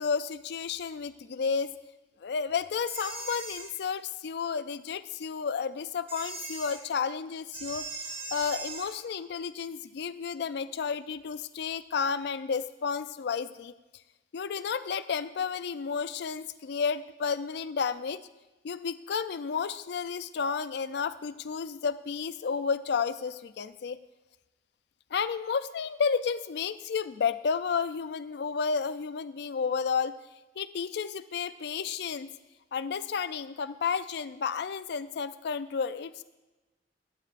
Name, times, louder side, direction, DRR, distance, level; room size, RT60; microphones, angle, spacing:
voice 1, 0.0-1.7 2.2-13.7 14.3-18.2 18.6-24.0 25.1-30.2 30.6-32.3 32.7-36.2, left 6 dB, 65° left, 14 dB, 0.4 m, -32 dB
sound 1, 2.9-3.7 6.1-6.8 7.5-8.9, right 3 dB, 30° right, 1.1 m, -39 dB
12.5 x 11.5 x 2.5 m, 1.1 s
head